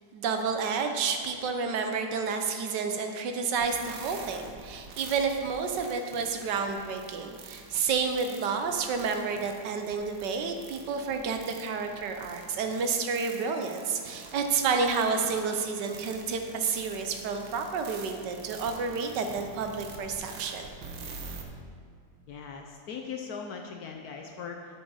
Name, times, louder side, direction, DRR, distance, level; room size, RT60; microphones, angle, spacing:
voice 1, 0.1-20.7, right 5 dB, 70° right, 5 dB, 1.3 m, -30 dB
sound 1, 3.6-21.4, right 4 dB, 90° right, 1.6 m, -46 dB
voice 2, 22.3-24.7, left 6 dB, 65° left, 2 dB, 1.0 m, -39 dB
8.2 x 6.1 x 5.5 m, 2.2 s
omnidirectional pair, 2.0 m